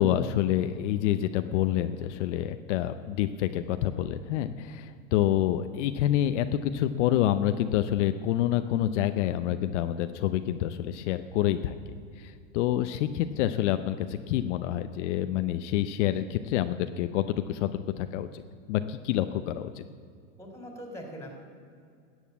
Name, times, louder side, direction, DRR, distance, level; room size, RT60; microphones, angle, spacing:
voice 1, 0.0-11.8 12.2-18.4 18.7-19.8, left 12 dB, 70° left, 10 dB, 0.7 m, -27 dB
voice 2, 20.4-21.4, equal, 5° left, 2 dB, 3.3 m, -42 dB
13.5 x 8.3 x 8.4 m, 2.4 s
supercardioid pair, 115°, 37 cm